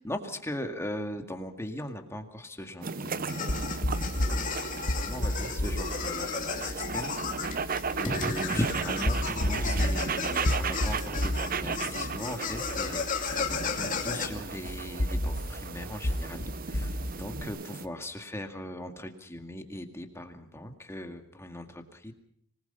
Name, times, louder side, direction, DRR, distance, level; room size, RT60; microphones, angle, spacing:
voice 1, 0.0-3.7 5.0-7.1 7.5-22.1, equal, 15° left, 5 dB, 2.0 m, -38 dB
sound 1, 2.8-17.9, right 5 dB, 45° right, 0.8 m, -36 dB
sound 2, 3.3-14.3, left 6 dB, 40° left, 2.5 m, -35 dB
sound 3, 3.5-17.4, left 1 dB, 60° left, 1.4 m, -33 dB
25.5 x 20.0 x 5.7 m, 0.66 s
head